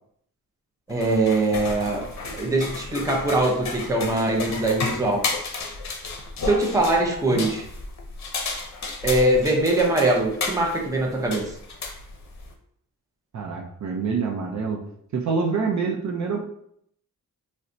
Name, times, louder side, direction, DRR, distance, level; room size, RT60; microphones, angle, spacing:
sound 1, 0.9-12.5, left 3 dB, 55° left, 0.6 m, -33 dB
voice 1, 0.9-2.1 2.3-5.2 6.4-7.6 9.0-11.5, right 2 dB, 10° right, 0 dB, 0.6 m, -22 dB
voice 2, 13.3-14.8 15.1-16.4, right 5 dB, 55° right, 1 dB, 0.6 m, -26 dB
3.9 x 2.1 x 2.6 m, 0.69 s
wide cardioid pair, 110°, 34 cm